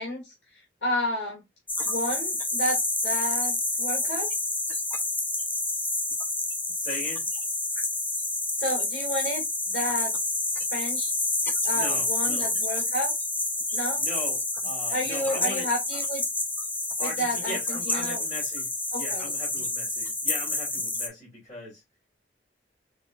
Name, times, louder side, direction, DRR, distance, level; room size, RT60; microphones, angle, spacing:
voice 1, 0.0-1.4 1.8-4.3 8.6-10.1 10.7-11.1 11.6-13.1 13.7-14.0 14.9-16.2 17.0-18.2 18.9-19.2, equal, 85° left, 2.1 m, -31 dB
sound 1, 1.7-21.1, left 2 dB, 10° left, 0.6 m, -28 dB
voice 2, 6.8-7.3 11.7-12.5 14.0-16.0 17.0-21.8, left 1 dB, 35° left, 2.9 m, -39 dB
4.9 x 3.4 x 2.3 m
head